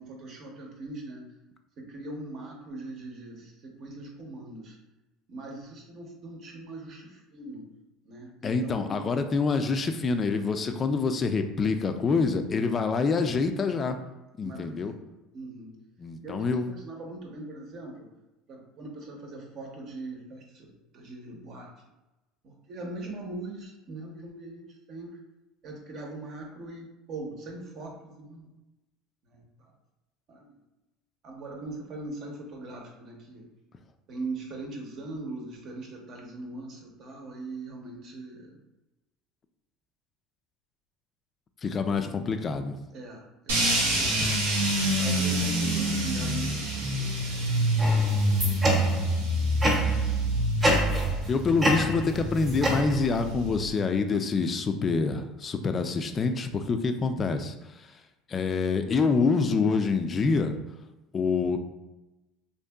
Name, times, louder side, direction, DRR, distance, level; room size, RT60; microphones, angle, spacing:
voice 1, 0.0-1.3 1.8-4.8 5.3-7.7 8.0-9.1 11.2-11.3 14.4-14.9 15.3-15.8 16.2-18.1 18.5-21.7 22.4-25.1 25.6-28.5 29.3-29.7 30.3-30.5 31.2-33.5 34.1-38.6 42.9-44.2 45.0-46.8, right 2 dB, 55° right, 0 dB, 0.8 m, -40 dB
voice 2, 8.4-14.0 14.4-14.9 16.0-16.7 41.6-42.7 44.2-44.4 51.3-57.9 58.3-60.5 61.1-61.6, left 4 dB, 35° left, 7 dB, 0.3 m, -26 dB
sound 1, 43.5-53.7, right 1 dB, 90° right, 0.7 m, -26 dB
sound 2, 47.8-49.1 49.6-50.1 50.6-51.3 51.6-53.3, equal, 25° right, 0.8 m, -27 dB
2.8 x 2.6 x 2.3 m, 1.0 s
supercardioid pair, 90°, 0 cm